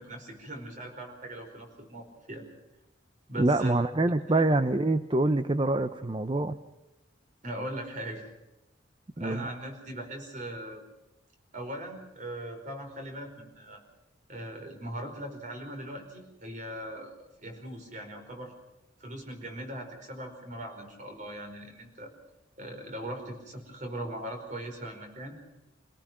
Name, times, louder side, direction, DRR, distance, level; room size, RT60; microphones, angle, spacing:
voice 1, 0.0-2.5 3.3-3.7 4.3-4.4 7.4-8.3 9.2-10.8 11.5-13.8 14.3-18.5 19.0-22.1 22.6-25.4, right 1 dB, 45° right, 4 dB, 5.0 m, -40 dB
voice 2, 3.4-6.5 9.2-9.5, right 2 dB, 25° right, 11 dB, 0.7 m, -25 dB
26.5 x 18.0 x 6.2 m, 0.98 s
head